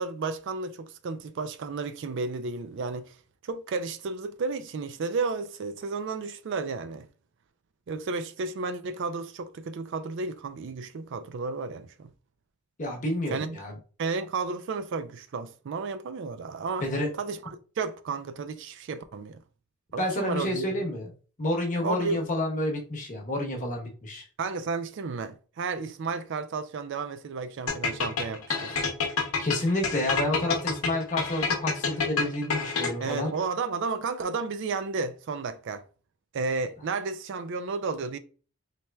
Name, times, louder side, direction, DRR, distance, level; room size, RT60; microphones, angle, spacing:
voice 1, 0.0-3.1 3.4-7.1 7.9-12.1 13.3-13.6 14.0-16.9 17.2-17.4 17.8-19.4 19.9-20.8 21.8-22.2 24.4-28.9 33.0-35.8 36.3-38.2, right 4 dB, 55° right, 0.4 m, -32 dB
voice 2, 12.8-13.8 16.8-17.1 20.0-21.1 21.4-24.2 29.4-33.3, left 1 dB, 35° left, 0.9 m, -29 dB
sound 1, 27.7-33.2, left 5 dB, 80° left, 0.8 m, -28 dB
4.2 x 3.1 x 2.2 m
head